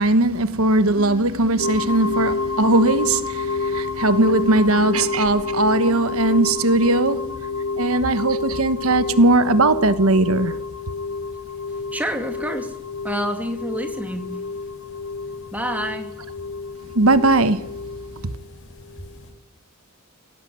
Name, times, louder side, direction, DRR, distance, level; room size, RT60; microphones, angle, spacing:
voice 1, 0.0-7.3 7.8-10.6 16.9-17.7, right 2 dB, 80° right, 1.3 m, -19 dB
sound 1, 1.0-9.8, left 3 dB, 25° left, 3.5 m, -40 dB
sound 2, 1.6-19.3, left 4 dB, 65° left, 6.4 m, -29 dB
voice 2, 11.7-12.7 13.0-14.4 15.5-16.1, equal, 5° right, 2.7 m, -28 dB
24.0 x 17.5 x 8.9 m
head